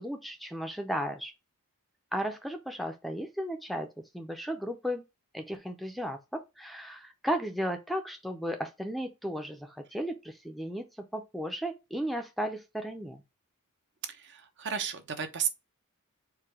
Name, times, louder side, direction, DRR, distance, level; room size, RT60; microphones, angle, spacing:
voice 1, 0.0-1.3 2.1-5.0 5.3-13.2, equal, ahead, 0.5 m, -35 dB
voice 2, 14.2-15.5, right 7 dB, 55° right, 0.8 m, -33 dB
4.7 x 2.2 x 4.7 m
head